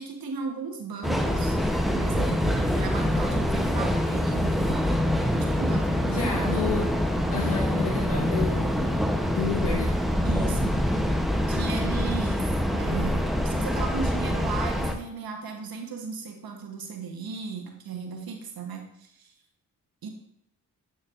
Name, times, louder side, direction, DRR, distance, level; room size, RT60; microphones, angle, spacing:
voice 1, 0.0-1.6 1.9-4.9 5.3-6.6 10.2-11.1 11.5-12.4 12.8-19.3 20.0-20.1, right 5 dB, 65° right, 3 dB, 1.1 m, -36 dB
Train, 1.0-14.9, equal, ahead, 0.7 m, -25 dB
voice 2, 6.1-6.9 7.3-9.0 9.3-10.0, left 5 dB, 85° left, -2 dB, 0.9 m, -31 dB
8.6 x 4.4 x 2.5 m, 0.75 s
supercardioid pair, 40°, 39 cm